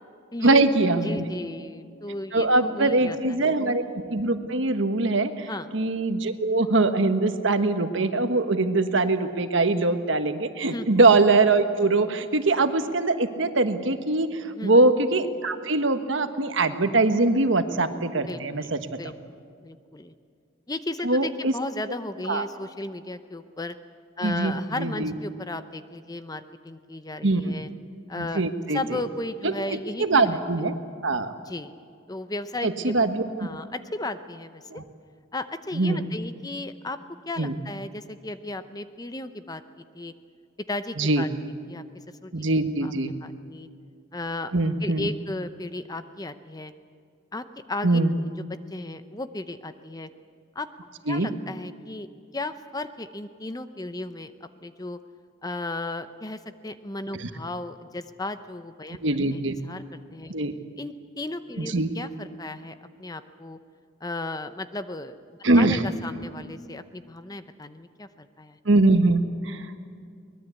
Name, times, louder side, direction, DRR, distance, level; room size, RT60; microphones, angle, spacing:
voice 1, 0.4-1.2 2.3-5.5 5.7-18.8 21.0-21.5 22.3-22.5 24.2-25.1 27.2-27.6 28.2-28.8 29.4-30.7 31.0-31.3 32.6-33.2 34.7-34.8 35.7-36.1 37.4-37.5 41.0-41.3 42.3-43.1 44.5-45.1 47.8-48.1 51.1-51.3 57.1-57.3 59.0-59.6 60.3-60.5 61.6-61.9 65.4-65.8 68.6-69.8, right 2 dB, 65° right, 9 dB, 1.3 m, -22 dB
voice 2, 1.0-3.5 5.4-5.7 10.7-10.9 14.5-14.7 18.3-18.7 19.0-20.1 20.7-23.8 24.2-27.7 28.1-28.4 28.7-30.4 31.5-31.7 32.1-33.0 33.4-34.6 35.3-37.0 37.3-39.6 39.9-40.1 40.6-41.3 41.7-41.8 42.2-42.3 42.8-43.7 44.1-44.5 44.8-46.7 47.3-48.4 48.7-50.1 50.5-50.7 51.1-52.1 52.3-55.0 55.4-59.0 59.3-60.3 60.8-63.6 64.0-68.6, left 2 dB, 20° left, 11 dB, 0.7 m, -35 dB
23.5 x 20.0 x 8.3 m, 2.3 s
head